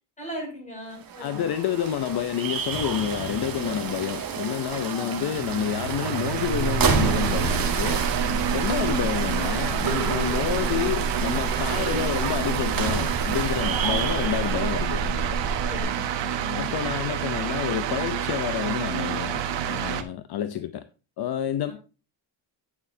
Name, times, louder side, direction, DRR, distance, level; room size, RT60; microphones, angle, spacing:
voice 1, 0.2-1.5 4.7-5.6 8.1-8.6 8.9-9.0 15.7-16.7 21.7-21.8, left 2 dB, 15° left, 6.4 m, -39 dB
sound 1, 0.9-15.0, right 6 dB, 50° right, 2.2 m, -31 dB
voice 2, 1.2-8.0 8.5-15.2 16.5-20.8 21.2-21.7, left 10 dB, 55° left, 0.7 m, -29 dB
sound 2, 5.2-20.0, right 9 dB, 65° right, 1.2 m, -29 dB
sound 3, 6.4-15.8, right 3 dB, 20° right, 2.5 m, -30 dB
11.5 x 8.8 x 2.7 m
cardioid pair, 175°, 46 cm